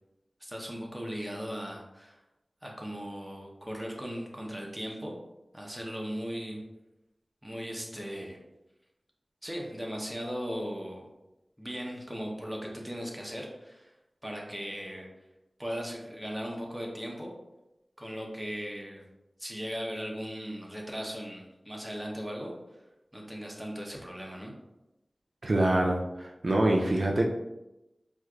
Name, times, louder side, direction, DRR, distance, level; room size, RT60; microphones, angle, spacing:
voice 1, 0.4-2.2 2.6-5.2 5.5-6.6 7.4-8.4 9.4-11.1 11.6-13.9 14.2-15.1 15.6-17.3 18.0-19.1 19.4-22.5 23.1-24.5, equal, 10° right, -1 dB, 0.8 m, -38 dB
voice 2, 25.4-27.3, right 1 dB, 65° right, 0 dB, 0.4 m, -25 dB
4.4 x 2.5 x 2.3 m, 0.95 s
wide cardioid pair, 55°, 0 cm